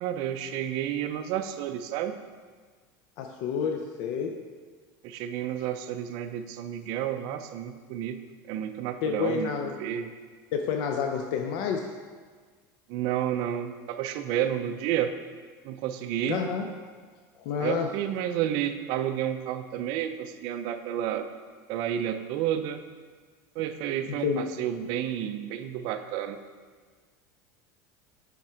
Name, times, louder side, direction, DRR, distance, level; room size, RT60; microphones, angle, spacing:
voice 1, 0.0-2.2 5.0-8.2 8.5-9.5 9.8-10.1 12.9-15.1 15.6-16.4 17.6-21.3 21.7-22.8 23.6-26.4, right 10 dB, 50° right, 8 dB, 0.5 m, -30 dB
voice 2, 3.2-4.4 9.0-9.8 10.5-11.9 16.3-16.7 17.4-17.9 24.1-24.4, left 6 dB, 55° left, 3 dB, 0.5 m, -29 dB
9.1 x 3.6 x 4.4 m, 1.5 s
cardioid pair, 160°, 9 cm